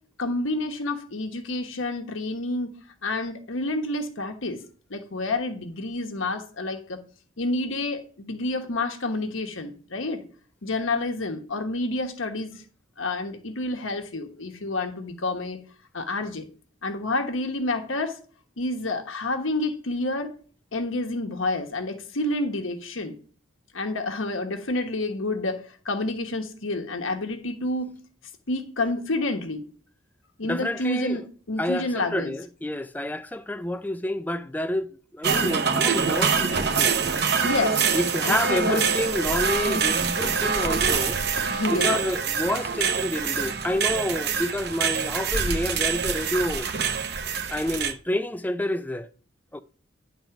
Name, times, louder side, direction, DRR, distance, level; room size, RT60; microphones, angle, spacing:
voice 1, 0.2-2.7 3.0-4.6 4.9-7.0 7.4-10.2 10.6-12.6 13.0-15.6 15.9-16.5 16.8-18.2 18.6-20.3 20.7-23.1 23.7-28.0 28.5-29.6 30.4-32.3 37.4-37.8 38.2-38.8 41.5-42.0, left 2 dB, 80° left, 1.2 m, -29 dB
voice 2, 30.4-31.2 31.6-36.9 37.9-41.2 41.7-46.7 47.5-49.1 49.5-49.6, left 1 dB, 10° left, 0.4 m, -29 dB
sound 1, 35.2-47.9, right 6 dB, 55° right, 0.9 m, -25 dB
10.0 x 4.0 x 5.9 m
head